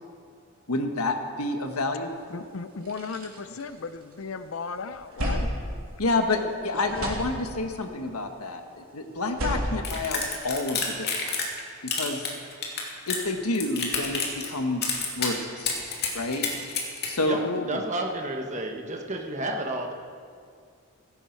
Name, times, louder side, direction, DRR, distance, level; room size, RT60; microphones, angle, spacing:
voice 1, 0.7-2.1 6.0-11.1 11.8-12.3 13.1-15.8 16.1-16.5 17.1-17.4, left 2 dB, 90° left, 5 dB, 1.4 m, -29 dB
sound 1, 2.2-2.3 2.6-4.3 4.7-6.5 6.8-7.9 9.1-10.8, equal, 75° right, 3.2 m, -33 dB
voice 2, 2.3-5.5 6.9-7.1 17.4-17.8, left 4 dB, 70° left, 11 dB, 0.6 m, -35 dB
sound 2, 9.8-11.6 11.9-13.3 13.5-14.5 14.8-15.3 15.7-17.1, left 5 dB, 45° left, 2.5 m, -29 dB
voice 3, 17.7-19.9, right 1 dB, 35° right, 2 dB, 1.3 m, -31 dB
16.0 x 15.5 x 4.6 m, 2.2 s
head